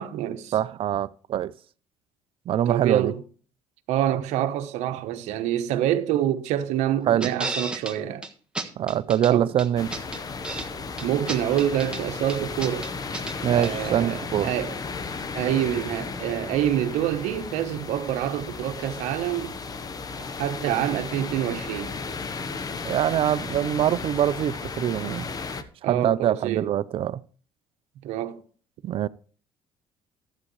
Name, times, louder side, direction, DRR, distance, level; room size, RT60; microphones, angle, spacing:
voice 1, 0.0-0.5 2.7-3.2 3.9-8.3 9.3-9.5 11.0-12.9 13.5-14.7 15.3-19.6 20.4-22.0 25.8-26.7 28.0-28.4, right 11 dB, 80° right, 1.0 m, -26 dB
voice 2, 0.5-1.5 2.5-3.1 7.1-7.3 8.8-9.9 13.4-14.5 22.8-25.3 25.9-27.2 28.8-29.1, right 11 dB, 50° right, 0.5 m, -24 dB
sound 1, 7.2-7.9 8.2-8.3 8.5-9.3 9.6-10.7 11.0-12.0 12.3-13.4 13.6-13.7, right 2 dB, 10° right, 1.4 m, -32 dB
sound 2, 9.8-25.6, left 4 dB, 35° left, 1.0 m, -34 dB
12.5 x 8.3 x 3.2 m
cardioid pair, 105°, 12 cm